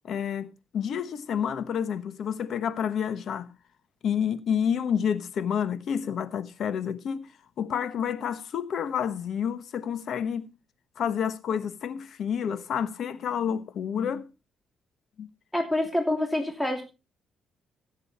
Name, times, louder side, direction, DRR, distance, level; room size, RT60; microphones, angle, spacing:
voice 1, 0.0-3.5 4.0-7.3 7.6-10.5 11.0-14.2 15.2-15.3, left 8 dB, 65° left, 1.2 m, -29 dB
voice 2, 15.5-16.8, left 1 dB, 5° left, 2.8 m, -26 dB
16.0 x 7.4 x 4.3 m
cardioid pair, 90°, 0 cm